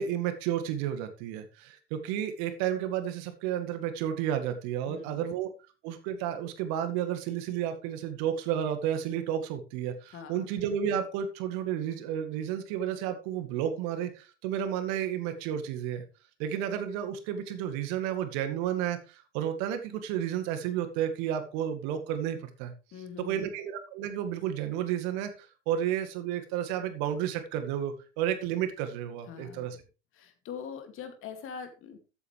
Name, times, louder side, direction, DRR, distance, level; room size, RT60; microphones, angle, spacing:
voice 1, 0.0-5.5 5.8-16.0 16.4-22.7 23.2-25.3 25.7-29.8, right 10 dB, 50° right, 8 dB, 2.0 m, -32 dB
voice 2, 4.9-5.3 10.1-10.5 22.9-23.5 29.3-29.8 30.1-32.0, left 7 dB, 35° left, 7 dB, 2.5 m, -43 dB
13.5 x 8.3 x 3.3 m, 0.33 s
figure-of-eight pair, 80°, 35 cm